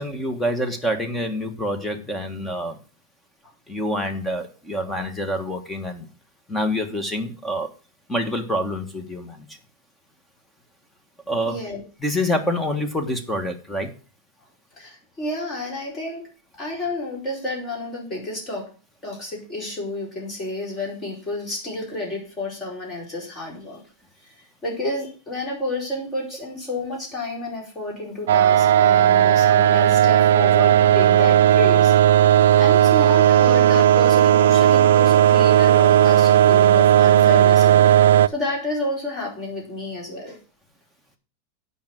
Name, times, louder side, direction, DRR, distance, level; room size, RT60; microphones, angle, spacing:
voice 1, 0.0-2.8 3.7-6.1 6.5-7.7 8.1-9.6 11.3-11.6 12.0-13.9, equal, 5° left, 7 dB, 1.3 m, -26 dB
voice 2, 11.5-11.8 14.8-16.3 16.6-18.7 19.0-23.8 24.2-31.9 32.6-40.4, left 2 dB, 25° left, -2 dB, 4.5 m, -30 dB
sound 1, 28.3-38.3, right 11 dB, 90° right, 0.4 m, -15 dB
8.6 x 5.5 x 7.5 m, 0.36 s
supercardioid pair, 155°, 0 cm